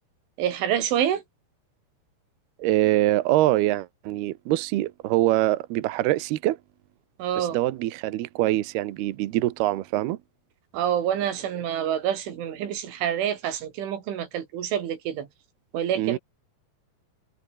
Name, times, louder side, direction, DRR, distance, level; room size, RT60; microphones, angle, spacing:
voice 1, 0.4-1.2 7.2-7.6 10.7-15.3 15.7-16.2, right 10 dB, 90° right, 5.3 m, -27 dB
voice 2, 2.6-6.6 7.4-10.2 16.0-16.2, right 15 dB, 70° right, 2.7 m, -24 dB
omnidirectional pair, 5.4 m